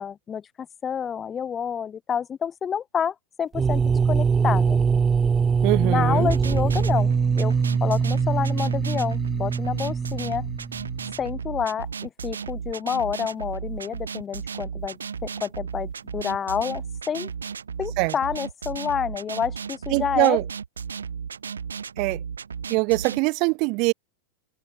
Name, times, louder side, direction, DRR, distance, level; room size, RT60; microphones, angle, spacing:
voice 1, 0.0-3.8 4.1-4.8 5.8-7.5 7.8-10.4 11.2-17.3 17.8-20.4, left 7 dB, 20° left, 4.5 m, -29 dB
sound 1, 3.5-11.3, right 5 dB, 15° right, 1.5 m, -23 dB
voice 2, 5.6-6.3 18.0-18.1 19.9-20.4 22.0-22.2 22.7-23.9, right 29 dB, 45° right, 1.9 m, -22 dB
sound 2, 6.0-23.2, right 6 dB, 70° right, 3.1 m, -34 dB
open air
figure-of-eight pair, 90°, 0 cm